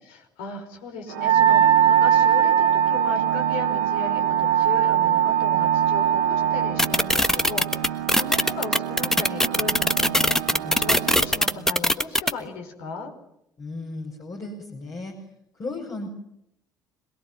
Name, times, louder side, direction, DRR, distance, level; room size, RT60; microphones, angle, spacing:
voice 1, 0.1-13.1, left 4 dB, 65° left, 4 dB, 5.6 m, -36 dB
Organ, 1.1-11.9, right 10 dB, 75° right, 2.4 m, -32 dB
Wind instrument woodwind instrument, 1.2-6.7, right 9 dB, 55° right, 2.1 m, -20 dB
sound 1, 6.8-12.3, left 1 dB, 5° left, 1.4 m, -20 dB
voice 2, 13.6-15.1 15.5-16.1, left 2 dB, 35° left, 0 dB, 6.0 m, -35 dB
27.0 x 21.0 x 9.5 m, 0.80 s
figure-of-eight pair, 55°, 10 cm